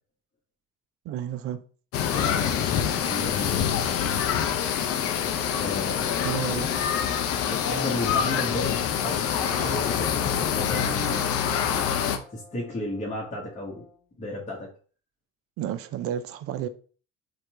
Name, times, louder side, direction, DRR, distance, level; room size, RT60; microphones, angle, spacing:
voice 1, 1.1-1.6 6.2-6.7 15.6-16.7, right 10 dB, 40° right, 0.5 m, -31 dB
sound 1, 1.9-12.2, left 8 dB, 40° left, 0.6 m, -26 dB
voice 2, 2.1-3.9 5.5-6.3 7.5-11.3 11.7-12.0 12.3-13.9 14.2-14.7, left 1 dB, 20° left, 1.3 m, -34 dB
sound 2, 5.1-14.1, left 2 dB, 90° left, 1.0 m, -51 dB
4.3 x 2.4 x 4.3 m
figure-of-eight pair, 55°, 37 cm